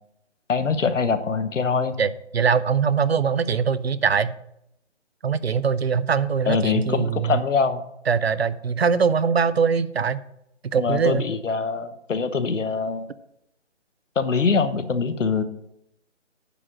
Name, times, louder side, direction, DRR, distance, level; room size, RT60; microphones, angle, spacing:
voice 1, 0.5-2.0 6.5-7.8 10.8-13.1 14.1-15.4, left 5 dB, 85° left, 10 dB, 1.1 m, -23 dB
voice 2, 2.0-4.4 5.2-7.4 8.1-10.2 10.6-11.3, right 6 dB, 60° right, 16 dB, 0.6 m, -22 dB
9.9 x 5.2 x 6.2 m, 0.80 s
hypercardioid pair, 175°, 36 cm